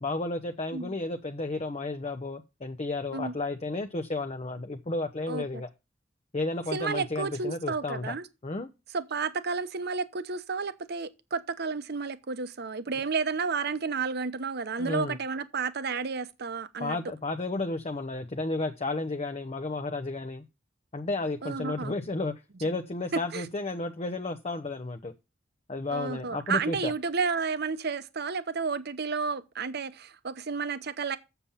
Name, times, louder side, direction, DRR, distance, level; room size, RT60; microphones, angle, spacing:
voice 1, 0.0-5.7 6.3-8.1 8.4-8.7 14.8-15.2 16.8-20.4 20.9-22.3 22.6-25.1 25.7-26.9, left 2 dB, 35° left, 0.7 m, -32 dB
voice 2, 5.3-5.6 6.7-8.3 8.9-17.0 21.4-21.9 22.6-22.7 23.3-23.5 25.9-31.2, right 5 dB, 55° right, 0.8 m, -31 dB
7.3 x 7.0 x 5.6 m
head